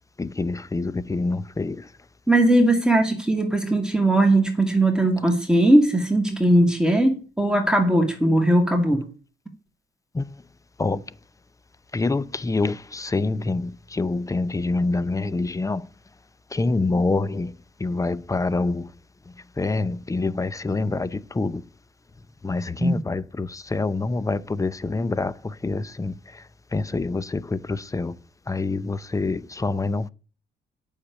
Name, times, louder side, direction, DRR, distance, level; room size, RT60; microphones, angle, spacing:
voice 1, 0.2-1.8 10.2-10.3 10.8-11.0 11.9-15.8 16.5-17.5 17.8-18.8 19.6-21.6 22.4-25.3 25.6-26.1 26.7-28.1 28.5-30.1, left 3 dB, 15° left, 0.6 m, -26 dB
voice 2, 2.3-9.0 22.8-23.0, right 1 dB, 5° right, 2.3 m, -19 dB
8.6 x 6.6 x 8.1 m
cardioid pair, 90°, 20 cm